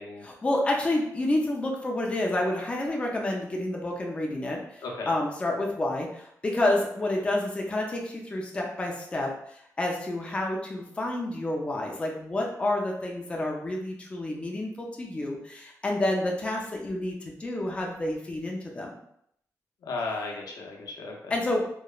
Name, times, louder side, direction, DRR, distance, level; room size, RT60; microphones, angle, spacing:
voice 1, 0.2-18.9 21.3-21.7, left 1 dB, 20° left, -1 dB, 0.4 m, -29 dB
voice 2, 4.8-5.1 19.8-21.3, left 3 dB, 80° left, 0 dB, 0.5 m, -35 dB
2.9 x 2.0 x 2.3 m, 0.72 s
wide cardioid pair, 140°, 6 cm